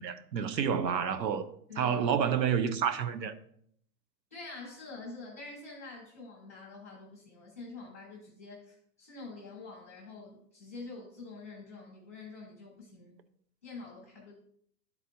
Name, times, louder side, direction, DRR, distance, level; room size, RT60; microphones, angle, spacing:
voice 1, 0.0-1.5 1.8-3.3, right 7 dB, 85° right, 0.9 m, -29 dB
voice 2, 1.7-2.0 4.3-13.2 13.6-14.3, left 3 dB, 10° left, 0.5 m, -46 dB
12.0 x 4.1 x 2.9 m
hypercardioid pair, 170°, 50 cm